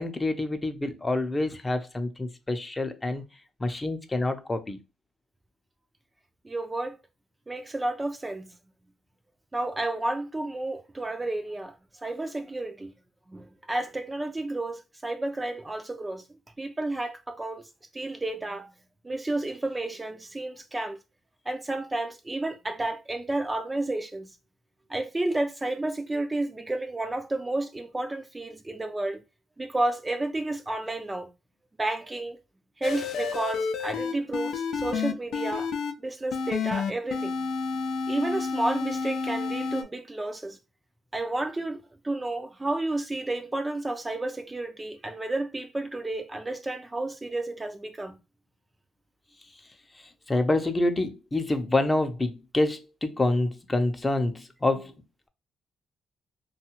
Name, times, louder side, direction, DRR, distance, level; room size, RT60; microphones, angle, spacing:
voice 1, 0.0-3.2 3.6-4.8 50.0-54.9, left 2 dB, 25° left, 0.6 m, -27 dB
voice 2, 6.4-7.0 7.5-8.5 9.5-11.7 12.0-12.9 13.3-16.2 16.6-17.6 17.9-18.7 19.0-21.0 21.5-24.3 24.9-29.2 29.6-31.3 31.8-32.4 32.8-35.7 36.0-37.3 38.1-40.6 41.1-48.2, right 2 dB, 20° right, 0.4 m, -31 dB
sound 1, 32.8-35.9 36.3-39.8, left 5 dB, 70° left, 0.4 m, -30 dB
2.6 x 2.3 x 2.9 m
supercardioid pair, 65°, 0 cm